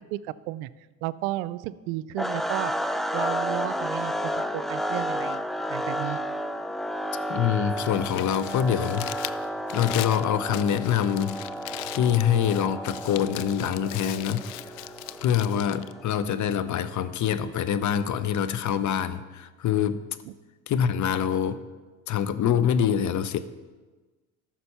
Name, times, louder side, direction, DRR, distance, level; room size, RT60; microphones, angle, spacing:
voice 1, 0.1-0.7 1.0-6.2 20.2-20.3, right 16 dB, 80° right, 18 dB, 0.5 m, -33 dB
sound 1, 2.2-16.3, equal, ahead, 0.3 m, -32 dB
Musical instrument, 2.6-16.0, right 2 dB, 20° right, 3.6 m, -53 dB
voice 2, 7.3-9.0 9.7-11.4 12.0-14.9 15.2-20.0 20.7-21.6 22.1-23.4, left 9 dB, 45° left, 13 dB, 0.8 m, -25 dB
Crumpling crinkling, 7.6-16.8, left 17 dB, 80° left, 0.5 m, -39 dB
13.5 x 6.0 x 5.6 m, 1.3 s
supercardioid pair, 80°, 41 cm